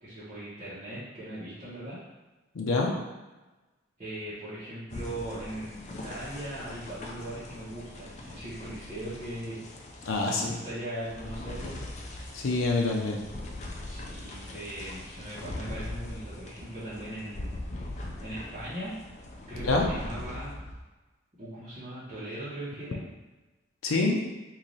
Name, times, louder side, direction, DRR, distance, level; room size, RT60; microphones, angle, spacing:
voice 1, 0.0-2.0 4.0-9.6 10.3-11.8 13.8-17.9 18.2-18.9 19.5-20.5 21.4-23.0, right 1 dB, 30° right, -13 dB, 1.1 m, -39 dB
voice 2, 2.6-2.9 10.1-10.5 12.4-13.2 19.6-19.9 23.8-24.2, left 3 dB, 85° left, 0 dB, 0.5 m, -26 dB
sound 1, 4.9-20.8, left 1 dB, 35° left, 0.4 m, -41 dB
3.2 x 2.6 x 3.9 m, 1.2 s
head